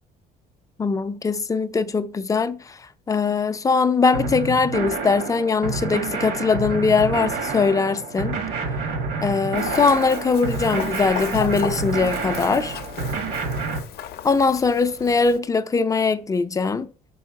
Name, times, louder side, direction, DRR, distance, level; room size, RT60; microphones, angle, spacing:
voice 1, 0.8-2.8 3.1-8.4 9.2-12.8 14.2-16.9, left 4 dB, 20° left, 0.4 m, -21 dB
sound 1, 4.1-13.8, right 4 dB, 80° right, 1.5 m, -28 dB
Chicken rooster, 9.6-15.4, left 10 dB, 65° left, 0.6 m, -35 dB
5.3 x 3.9 x 4.7 m
cardioid pair, 110°, 17 cm